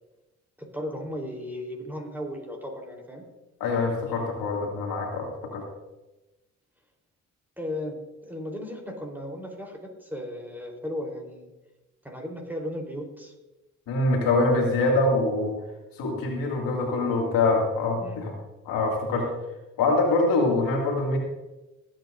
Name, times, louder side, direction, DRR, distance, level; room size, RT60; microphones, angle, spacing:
voice 1, 0.6-3.2 7.6-11.5 12.0-13.3 18.0-18.2, left 1 dB, 5° right, 1 dB, 3.8 m, -36 dB
voice 2, 3.6-5.3 5.5-5.6 13.9-15.5 16.0-18.3 18.7-19.3 19.8-21.2, left 2 dB, 85° left, 0 dB, 2.4 m, -24 dB
22.5 x 9.1 x 2.6 m, 1.1 s
supercardioid pair, 60°, 34 cm